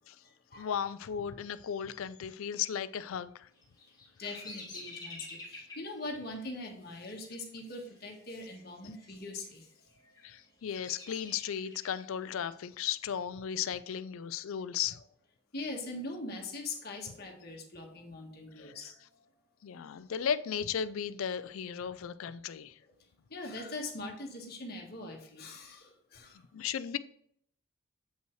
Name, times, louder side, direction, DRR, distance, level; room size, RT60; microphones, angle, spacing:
voice 1, 0.6-3.5 10.2-15.0 18.6-18.7 19.6-22.7 26.5-27.0, left 8 dB, 80° left, 0.4 m, -35 dB
Bird vocalization bird call bird song, 3.6-8.6 8.9-9.5 10.0-12.0, left 3 dB, 20° left, 1.6 m, -49 dB
voice 2, 4.2-9.7 15.5-18.9 21.7-21.8 23.3-26.4, left 2 dB, 45° left, 1.4 m, -42 dB
7.7 x 5.5 x 3.1 m
head